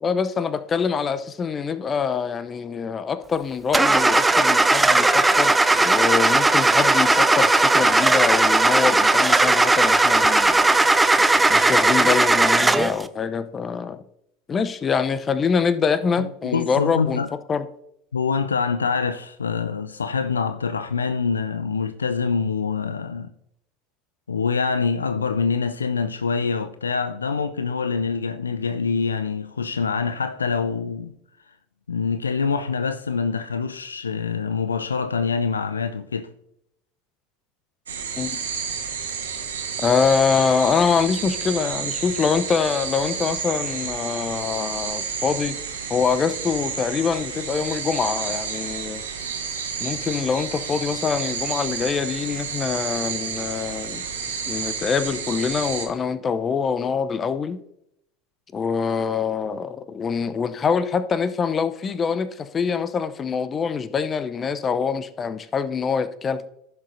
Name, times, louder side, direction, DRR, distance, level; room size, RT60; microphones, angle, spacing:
voice 1, 0.0-10.5 11.5-14.0 14.5-17.2 17.5-17.7 38.2-38.4 39.8-45.6 45.9-49.0 49.8-54.0 54.5-57.6 58.5-66.5, left 6 dB, 30° left, 0.6 m, -24 dB
Car / Engine starting, 3.7-13.0, right 2 dB, 10° right, 0.5 m, -17 dB
voice 2, 16.2-17.3 18.1-23.3 24.3-31.1 31.9-36.3, left 5 dB, 85° left, 0.4 m, -25 dB
sound 1, 37.9-55.8, right 6 dB, 80° right, 1.4 m, -30 dB
15.0 x 6.5 x 2.6 m
figure-of-eight pair, 70°, 0 cm